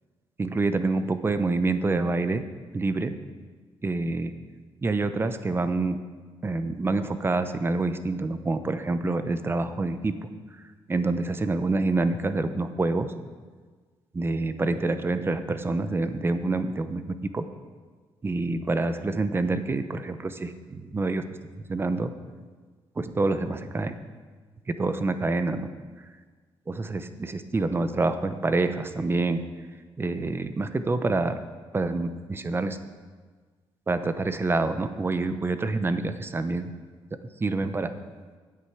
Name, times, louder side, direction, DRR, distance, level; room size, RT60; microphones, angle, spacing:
voice 1, 0.4-2.4 2.7-3.1 3.8-4.3 4.8-6.0 6.4-10.1 10.9-13.1 14.1-17.4 18.2-21.2 21.7-22.1 23.0-23.9 24.8-25.7 26.7-29.4 30.0-31.4 31.7-32.8 33.9-36.7 37.4-37.9, right 3 dB, 25° right, 10 dB, 0.7 m, -27 dB
9.5 x 8.1 x 5.9 m, 1.5 s
cardioid pair, 95°, 10 cm